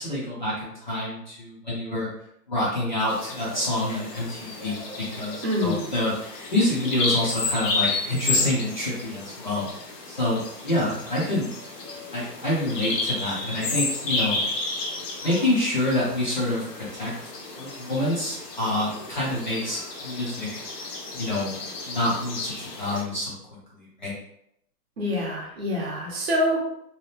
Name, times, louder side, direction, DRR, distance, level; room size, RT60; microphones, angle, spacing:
voice 1, 0.0-2.1 2.5-11.5 12.1-14.4 15.2-17.1 17.6-20.5 21.1-21.6 21.9-23.3 23.7-24.2, left 1 dB, 30° left, -8 dB, 0.5 m, -27 dB
Bird vocalization bird call bird song, 3.1-23.0, left 3 dB, 80° left, 1.0 m, -32 dB
voice 2, 5.4-5.8 25.0-26.6, left 1 dB, 40° right, -3 dB, 0.8 m, -26 dB
2.8 x 2.3 x 3.2 m, 0.76 s
hypercardioid pair, 170°, 48 cm